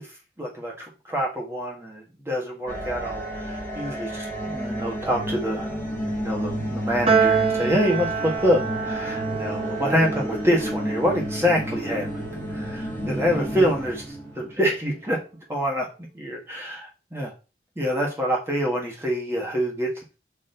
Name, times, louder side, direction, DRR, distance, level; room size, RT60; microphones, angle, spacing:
voice 1, 0.4-5.8 6.2-12.1 12.5-14.0 14.4-15.2 15.5-15.9 16.1-17.3 17.8-19.9, equal, 15° right, -1 dB, 1.5 m, -26 dB
sound 1, 2.7-14.7, equal, 10° left, 2.1 m, -31 dB
Piano, 7.1-13.6, right 5 dB, 35° right, 0.9 m, -28 dB
6.1 x 4.5 x 3.9 m, 0.31 s
head